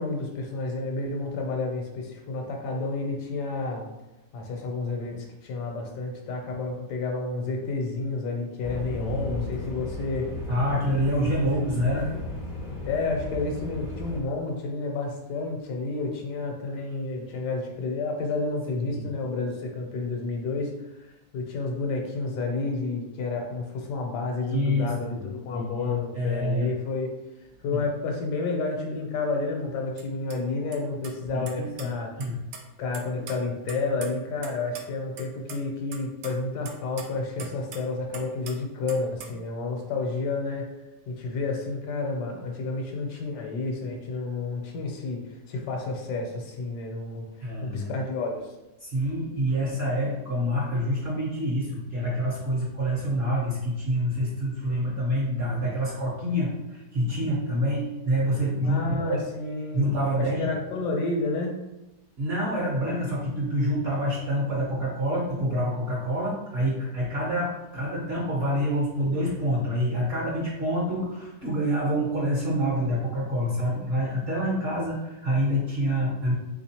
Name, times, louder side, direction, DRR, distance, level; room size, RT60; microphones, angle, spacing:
voice 1, 0.0-3.9 4.3-10.3 11.6-12.0 12.8-25.2 25.4-27.1 27.4-32.3 32.8-40.7 41.1-48.5 58.6-59.9 60.2-61.6, left 3 dB, 75° left, 1 dB, 1.2 m, -30 dB
sound 1, 8.6-14.2, left 2 dB, 55° left, 0.4 m, -35 dB
voice 2, 9.0-9.5 10.5-12.1 18.7-19.0 24.5-26.7 27.7-27.8 31.3-32.4 33.9-34.0 47.4-47.9 48.8-59.2 59.7-60.6 62.2-76.3, equal, 45° right, -6 dB, 0.9 m, -27 dB
sound 2, 30.0-30.1 30.3-30.4 30.7-30.8 31.0-31.9 32.2-32.6 32.9-34.5 34.8-34.9 35.2-35.6 35.9-37.9 38.1-38.5 38.9-39.4, right 6 dB, 80° right, 1.2 m, -41 dB
3.6 x 2.9 x 2.8 m, 0.95 s
omnidirectional pair, 1.9 m